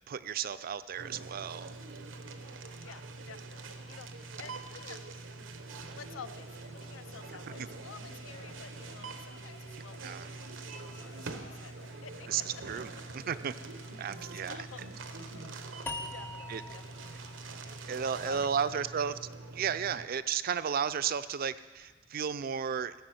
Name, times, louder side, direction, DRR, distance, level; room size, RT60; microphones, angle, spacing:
voice 1, 0.1-1.8 7.6-7.7 10.0-10.3 12.3-13.5 14.0-14.6 16.5-16.8 17.8-19.1 19.5-22.9, right 7 dB, 50° right, 13 dB, 0.4 m, -33 dB
sound 1, 1.0-20.1, right 3 dB, 85° right, 0.9 m, -45 dB
voice 2, 2.8-5.1 5.9-11.7 12.0-12.3 14.3-14.8 16.1-17.3 18.2-18.8, left 7 dB, 85° left, 13 dB, 0.5 m, -51 dB
sound 2, 6.3-18.0, left 5 dB, 60° left, 1.3 m, -59 dB
sound 3, 15.9-19.0, left 2 dB, 10° left, 0.5 m, -44 dB
16.0 x 6.1 x 7.8 m, 1.4 s
head